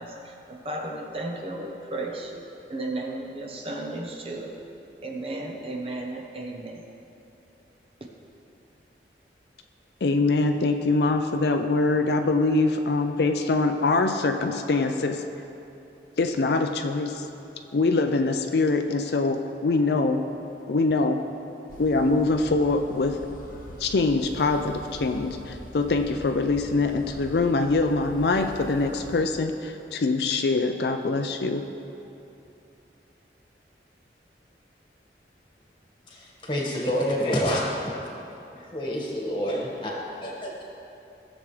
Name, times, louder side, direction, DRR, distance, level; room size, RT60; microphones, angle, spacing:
voice 1, 0.0-2.4 2.7-4.5 5.0-6.8, right 2 dB, 30° right, 1 dB, 0.8 m, -34 dB
voice 2, 10.0-15.2 16.2-17.2 17.7-20.2 20.7-21.2 21.8-23.2 23.8-31.6, left 3 dB, 65° left, 6 dB, 0.5 m, -24 dB
sound 1, 21.7-29.2, left 1 dB, 50° left, 0.8 m, -43 dB
voice 3, 36.1-37.9 38.6-39.9 40.2-40.6, equal, 25° left, -3 dB, 1.6 m, -28 dB
16.5 x 7.2 x 3.3 m, 2.9 s
head